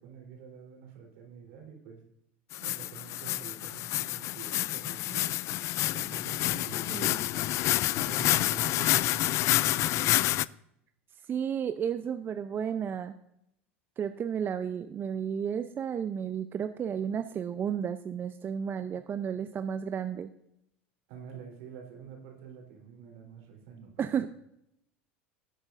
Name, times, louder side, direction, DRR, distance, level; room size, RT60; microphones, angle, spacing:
voice 1, 0.0-2.0 2.6-5.3 5.9-7.1 7.9-10.4 21.1-24.3, right 7 dB, 65° right, 1 dB, 3.6 m, -47 dB
sound 1, 2.5-10.5, left 16 dB, 50° left, 0.3 m, -28 dB
voice 2, 6.9-7.2 11.3-13.1 14.0-20.3 24.0-24.3, right 8 dB, 30° right, 9 dB, 0.5 m, -32 dB
17.5 x 8.1 x 2.6 m, 0.79 s
hypercardioid pair, 80°, 7 cm